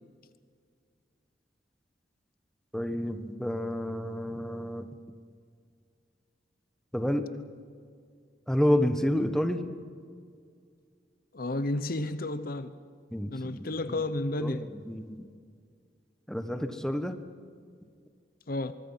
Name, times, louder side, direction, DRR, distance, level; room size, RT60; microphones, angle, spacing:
voice 1, 2.7-4.9 6.9-7.2 8.5-9.6 13.1-14.0 14.4-15.3 16.3-17.2, equal, 5° left, 1.2 m, -29 dB
voice 2, 11.3-12.7 13.3-14.7 18.5-18.7, left 2 dB, 55° left, 0.9 m, -32 dB
24.5 x 22.5 x 5.7 m
head